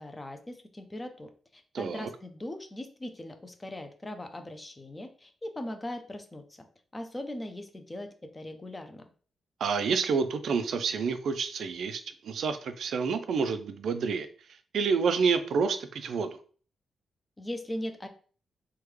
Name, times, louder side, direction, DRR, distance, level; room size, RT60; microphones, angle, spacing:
voice 1, 0.0-6.4 6.9-9.1 17.4-18.1, left 1 dB, 20° left, 7 dB, 0.5 m, -39 dB
voice 2, 1.7-2.1 9.6-14.3 14.7-16.4, right 5 dB, 75° right, 9 dB, 0.4 m, -28 dB
3.5 x 2.3 x 3.1 m, 0.42 s
cardioid pair, 100°, 0 cm